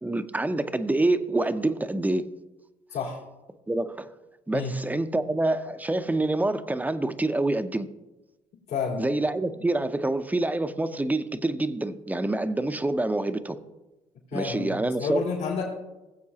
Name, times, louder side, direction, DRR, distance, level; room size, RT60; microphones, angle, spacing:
voice 1, 0.0-2.3 3.7-4.1 4.5-7.9 9.0-13.6 14.3-15.2, right 2 dB, 10° right, 0.7 m, -26 dB
voice 2, 8.7-9.1 14.3-15.7, left 5 dB, 75° left, 3.6 m, -30 dB
18.5 x 7.7 x 2.8 m
supercardioid pair, 75°, 16 cm